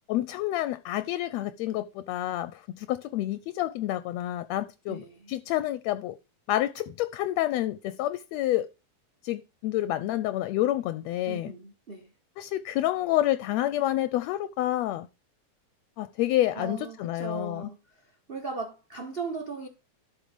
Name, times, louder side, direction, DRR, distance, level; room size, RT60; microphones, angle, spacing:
voice 1, 0.1-6.1 6.5-8.7 9.2-11.5 12.4-15.1 16.0-17.7, left 14 dB, 75° left, 1.7 m, -28 dB
voice 2, 4.9-5.3 11.2-12.1 16.5-17.8 18.3-19.7, right 4 dB, 40° right, 0.8 m, -37 dB
12.5 x 4.8 x 5.2 m
omnidirectional pair, 3.4 m